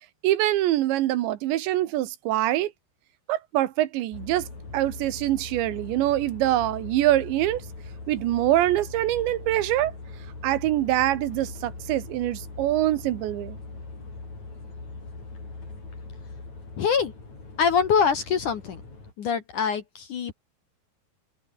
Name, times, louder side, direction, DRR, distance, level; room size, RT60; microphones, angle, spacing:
voice 1, 0.2-2.7 3.3-4.5 4.7-7.6 8.1-9.9 10.4-13.6, right 14 dB, 75° right, 3.4 m, -24 dB
sound 1, 4.1-19.1, left 3 dB, 35° left, 9.1 m, -41 dB
voice 2, 16.8-17.1 17.6-18.8 19.2-20.3, left 6 dB, 55° left, 2.6 m, -24 dB
omnidirectional pair, 5.4 m